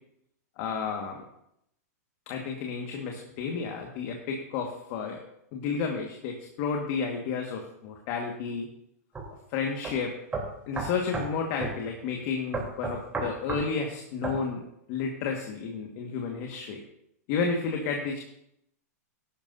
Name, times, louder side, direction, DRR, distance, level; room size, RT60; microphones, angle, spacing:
voice 1, 0.6-1.2 2.3-5.2 5.5-8.7 9.5-10.1 10.7-14.6 14.9-16.8 17.3-18.2, left 5 dB, 50° left, 2 dB, 1.7 m, -31 dB
sound 1, 9.1-9.3 9.8-9.9 10.3-11.3 11.6-11.8 12.5-13.7 14.2-14.4, right 3 dB, 15° right, 3.3 m, -32 dB
15.5 x 11.5 x 2.7 m, 0.78 s
hypercardioid pair, 120°, 9 cm